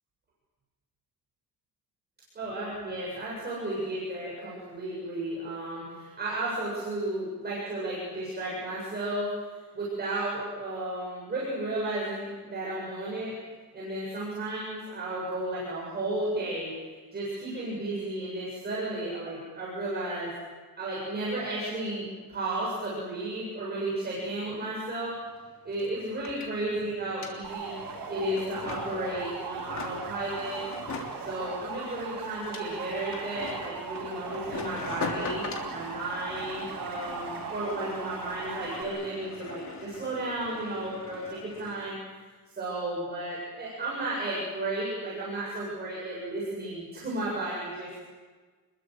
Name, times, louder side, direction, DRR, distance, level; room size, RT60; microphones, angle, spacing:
voice 1, 2.3-9.3 9.7-13.3 13.7-16.7 17.1-20.3 20.8-25.1 25.6-27.7 28.1-30.6 31.1-35.4 35.7-42.0 42.5-48.0, right 1 dB, 25° right, -6 dB, 7.6 m, -33 dB
sound 1, 25.1-25.2 25.3-41.9, left 4 dB, 50° left, 3.5 m, -42 dB
sound 2, 27.4-38.8, right 5 dB, 80° right, 6.8 m, -39 dB
29.0 x 22.0 x 7.9 m, 1.4 s
cardioid pair, 175°, 36 cm